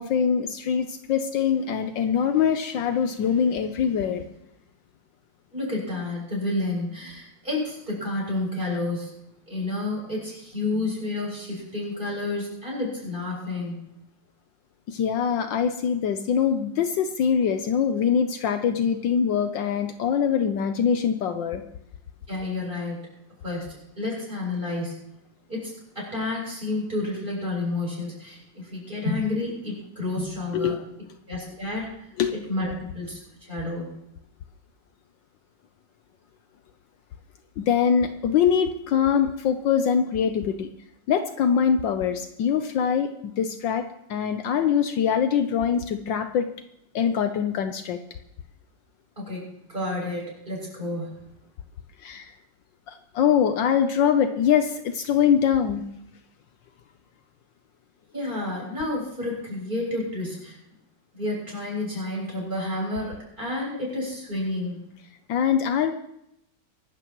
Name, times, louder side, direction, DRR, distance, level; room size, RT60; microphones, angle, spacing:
voice 1, 0.0-4.3 14.9-21.6 30.5-30.8 32.2-32.3 37.6-40.7 41.1-46.5 46.9-48.0 52.0-52.3 52.9-55.8 65.3-66.0, left 7 dB, 70° left, 8 dB, 1.4 m, -23 dB
voice 2, 5.5-9.1 9.5-13.8 22.3-23.0 23.4-24.9 25.5-30.8 31.3-32.1 32.5-33.9 49.2-51.2 58.1-60.6 61.1-64.8, left 2 dB, 25° right, -4 dB, 7.5 m, -30 dB
24.0 x 12.5 x 3.1 m, 0.79 s
omnidirectional pair, 2.1 m